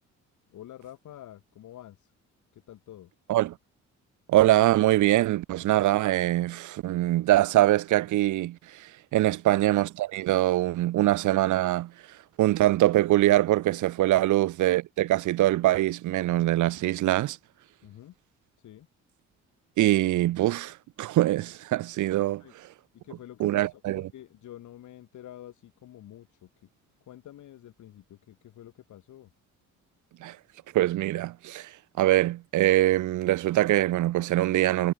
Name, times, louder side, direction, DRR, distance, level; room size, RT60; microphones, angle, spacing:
voice 1, 0.5-2.1 2.5-3.1 9.2-9.4 14.1-14.2 17.8-18.1 18.6-18.9 22.3-22.5 23.0-26.5 27.1-29.3, left 12 dB, 75° left, 4.6 m, -48 dB
voice 2, 4.3-11.9 12.4-17.4 19.8-22.4 23.4-24.0 30.2-30.4 30.7-34.9, right 15 dB, 75° right, 1.0 m, -23 dB
cardioid pair, 90°, 30 cm